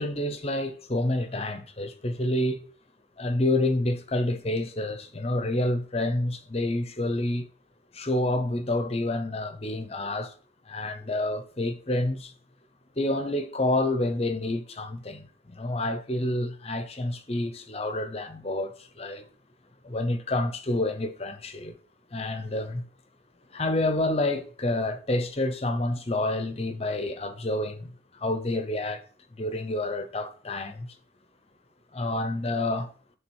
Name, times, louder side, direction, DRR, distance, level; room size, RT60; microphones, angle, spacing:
voice 1, 0.0-2.6 3.2-7.5 7.9-10.3 10.7-12.3 13.0-19.2 19.8-21.8 22.1-22.8 23.5-27.9 28.2-29.0 29.4-30.9 31.9-32.9, left 1 dB, 30° left, 0.8 m, -28 dB
7.4 x 3.5 x 6.2 m
head